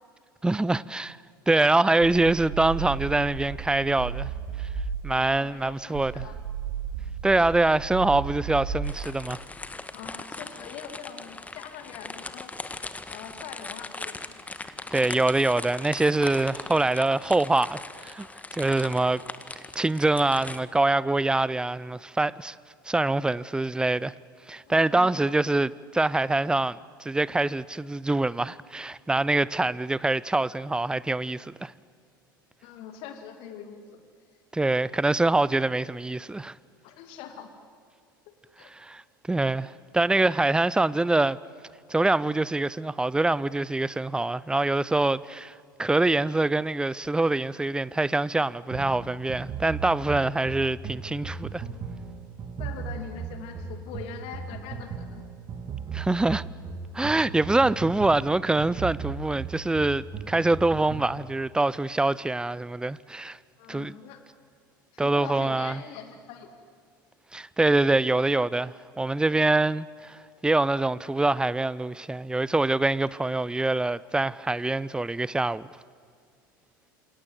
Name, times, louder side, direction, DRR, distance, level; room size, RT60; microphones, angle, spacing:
voice 1, 0.4-1.2 1.5-4.3 4.6-4.7 5.0-6.3 7.2-9.4 14.9-18.3 18.5-19.2 19.7-22.6 22.9-24.1 24.5-31.7 34.5-36.5 38.7-39.0 39.3-41.4 41.9-45.5 45.8-51.6 55.9-56.4 56.9-63.4 63.7-63.9 65.0-65.8 67.3-75.7, right 2 dB, 5° right, 0.7 m, -24 dB
sound 1, 2.0-5.3 5.9-9.3, right 7 dB, 65° right, 3.0 m, -34 dB
voice 2, 5.4-6.4 9.9-12.8 13.1-14.3 24.7-25.4 32.6-34.0 36.8-37.5 38.3-38.7 52.6-55.2 63.6-64.2 64.9-66.6, left 8 dB, 55° left, 2.5 m, -43 dB
sound 2, 8.8-20.6, left 3 dB, 15° left, 1.6 m, -40 dB
sound 3, 48.7-61.2, right 5 dB, 35° right, 3.3 m, -37 dB
27.5 x 27.0 x 7.9 m
figure-of-eight pair, 75°, 11 cm